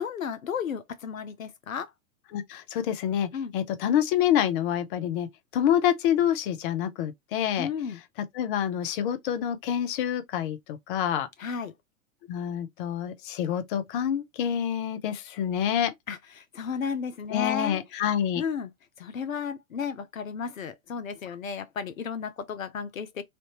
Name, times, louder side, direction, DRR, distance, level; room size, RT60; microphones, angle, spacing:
voice 1, 0.0-1.9 3.3-3.5 7.6-8.0 11.4-11.7 16.1-17.8 18.4-18.7 19.0-23.2, left 6 dB, 75° left, 0.7 m, -33 dB
voice 2, 2.3-5.3 5.5-7.7 8.3-11.3 12.3-15.9 17.3-18.4, left 10 dB, 40° left, 0.7 m, -27 dB
3.4 x 2.6 x 2.9 m
figure-of-eight pair, 100°, 41 cm